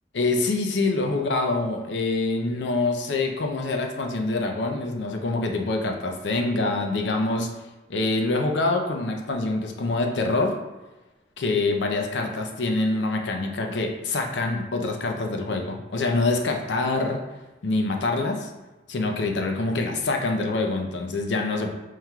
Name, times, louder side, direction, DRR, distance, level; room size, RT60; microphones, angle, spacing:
voice 1, 0.1-7.5 7.9-10.6 11.4-17.2 17.6-18.5 18.9-21.7, left 2 dB, 80° left, 3 dB, 0.5 m, -25 dB
5.6 x 3.1 x 2.3 m, 1.1 s
head